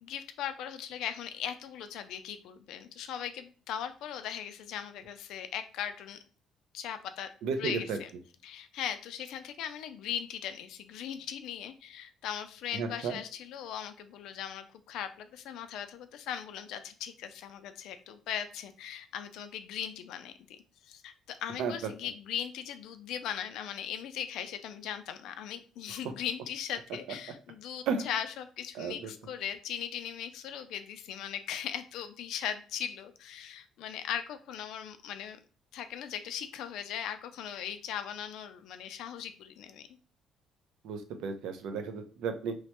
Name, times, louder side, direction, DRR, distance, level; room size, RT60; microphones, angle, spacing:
voice 1, 0.0-6.2 6.7-7.3 7.5-8.1 8.4-20.3 20.8-35.4 35.7-39.9, left 9 dB, 70° left, 9 dB, 0.4 m, -39 dB
voice 2, 7.4-8.0 12.7-13.2 21.6-21.7 27.9-28.1 28.7-29.1 40.8-42.6, right 5 dB, 70° right, 7 dB, 0.5 m, -33 dB
3.0 x 2.1 x 2.9 m, 0.42 s
cardioid pair, 180°, 0 cm